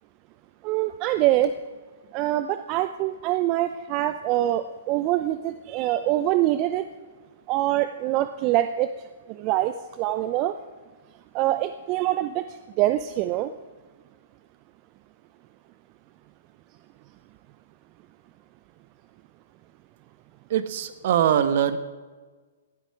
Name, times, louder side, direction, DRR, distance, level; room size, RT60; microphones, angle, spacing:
voice 1, 0.6-1.5 2.1-6.9 7.5-8.9 9.3-10.6 11.3-12.4 12.8-13.5, right 14 dB, 35° right, 11 dB, 0.6 m, -24 dB
voice 2, 20.5-21.8, right 9 dB, 55° right, 12 dB, 1.3 m, -22 dB
18.0 x 12.5 x 4.9 m, 1.4 s
figure-of-eight pair, 120°, 0 cm